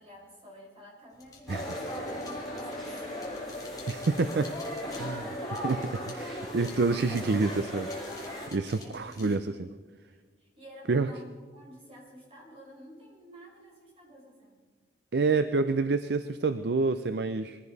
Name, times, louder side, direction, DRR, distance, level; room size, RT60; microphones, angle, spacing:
voice 1, 0.0-3.5 3.9-5.9 8.6-9.5 10.4-14.6, equal, 30° right, -3 dB, 5.2 m, -51 dB
sound 1, 1.1-9.4, left 4 dB, 20° left, 2.3 m, -52 dB
sound 2, 1.4-7.3, left 2 dB, 45° left, 1.1 m, -45 dB
sound 3, 1.5-8.5, equal, ahead, 6.0 m, -37 dB
voice 2, 3.9-4.5 5.0-5.2 5.6-5.8 6.1-8.2 8.5-9.4 10.9-11.1 15.1-17.6, right 3 dB, 60° right, 11 dB, 0.5 m, -27 dB
22.5 x 15.0 x 4.1 m, 1.5 s
head